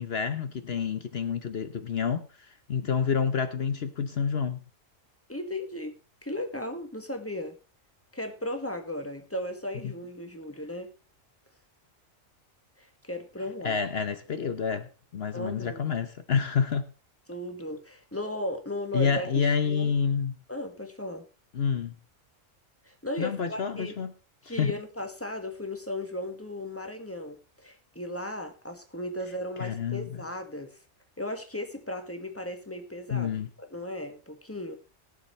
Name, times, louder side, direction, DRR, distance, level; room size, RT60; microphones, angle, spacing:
voice 1, 0.0-2.3 2.7-4.6 9.8-9.9 13.6-16.9 18.9-20.4 21.5-21.9 23.2-24.1 24.5-24.7 29.6-30.1 33.1-33.5, left 6 dB, 55° left, 1.1 m, -28 dB
voice 2, 5.3-5.9 6.2-7.6 8.1-10.9 12.8-13.8 15.3-15.9 17.3-19.9 20.5-21.3 22.8-23.9 24.4-30.7 31.2-33.3 33.6-34.8, left 1 dB, 10° left, 1.7 m, -36 dB
20.5 x 7.1 x 3.2 m
omnidirectional pair, 1.4 m